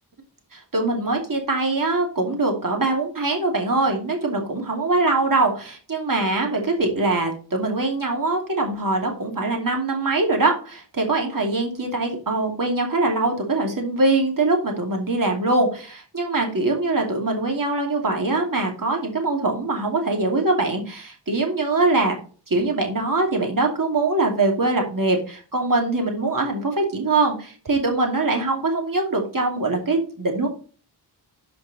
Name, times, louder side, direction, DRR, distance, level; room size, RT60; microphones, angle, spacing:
voice 1, 0.5-22.1 22.5-30.5, right 2 dB, 50° right, 2 dB, 2.6 m, -23 dB
11.5 x 5.2 x 4.1 m, 0.39 s
wide cardioid pair, 110°, 42 cm